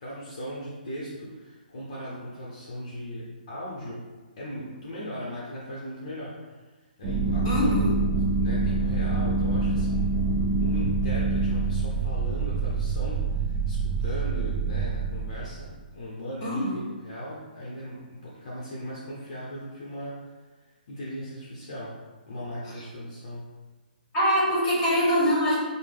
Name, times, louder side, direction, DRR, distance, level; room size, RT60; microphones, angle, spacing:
voice 1, 0.0-4.0 4.4-6.6 7.0-7.9 8.4-10.1 10.6-20.3 20.9-22.0 22.3-23.5, equal, 35° left, -6 dB, 0.7 m, -38 dB
sound 1, 7.0-15.7, right 3 dB, 25° right, 0.6 m, -26 dB
voice 2, 7.4-7.9 16.4-16.8 24.1-25.5, equal, 10° left, -8 dB, 1.2 m, -23 dB
5.4 x 2.1 x 3.5 m, 1.3 s
hypercardioid pair, 175°, 5 cm